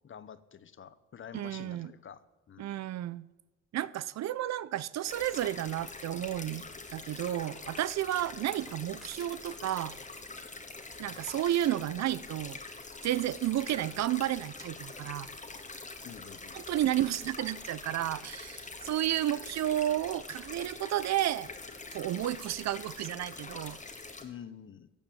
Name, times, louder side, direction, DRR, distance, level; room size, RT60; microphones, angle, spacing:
voice 1, 0.0-2.8 16.0-16.7 24.2-24.9, left 8 dB, 40° left, 0.8 m, -48 dB
voice 2, 1.3-1.9 2.6-3.2 3.7-6.6 6.9-10.0 11.0-12.6 13.0-15.3 16.5-21.5 21.9-23.8, right 13 dB, 60° right, 0.5 m, -32 dB
sound 1, 5.1-24.2, left 3 dB, 25° left, 1.6 m, -45 dB
sound 2, 8.4-10.4 10.6-10.9 11.2-11.4 11.6-12.1 13.0-13.1, equal, ahead, 0.9 m, -59 dB
15.5 x 5.2 x 8.7 m
cardioid pair, 90°, 30 cm